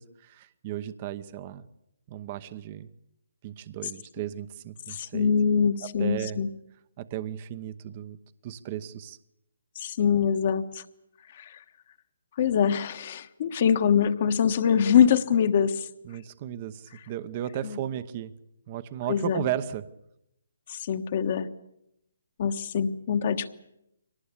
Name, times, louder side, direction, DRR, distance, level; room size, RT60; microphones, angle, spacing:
voice 1, 0.0-1.6 2.1-2.9 3.4-5.3 5.8-6.4 7.0-8.2 8.4-9.2 16.0-18.3 18.7-19.9, right 11 dB, 35° right, 14 dB, 1.0 m, -35 dB
voice 2, 4.9-6.5 9.7-10.8 11.3-11.6 12.4-15.9 17.6-17.8 19.1-19.4 20.7-21.5 22.4-23.5, left 7 dB, 45° left, 8 dB, 1.3 m, -24 dB
23.5 x 19.0 x 8.4 m, 0.82 s
hypercardioid pair, 145°, 0 cm